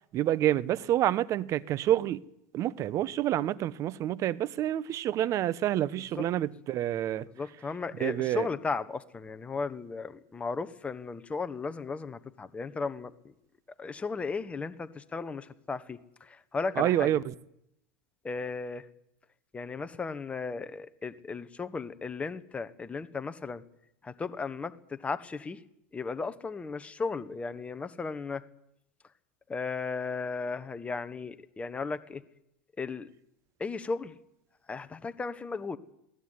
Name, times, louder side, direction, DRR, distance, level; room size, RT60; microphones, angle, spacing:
voice 1, 0.1-2.2 2.5-7.3 7.9-8.5 16.8-17.3, right 12 dB, 40° right, 1.1 m, -28 dB
voice 2, 7.4-13.1 13.8-16.0 16.3-17.1 18.2-18.8 19.5-23.6 24.0-25.6 25.9-28.4 29.5-32.2 32.8-33.1 33.6-34.1 34.7-35.8, left 4 dB, 15° left, 1.4 m, -35 dB
21.0 x 17.5 x 9.8 m
hypercardioid pair, 115°, 8 cm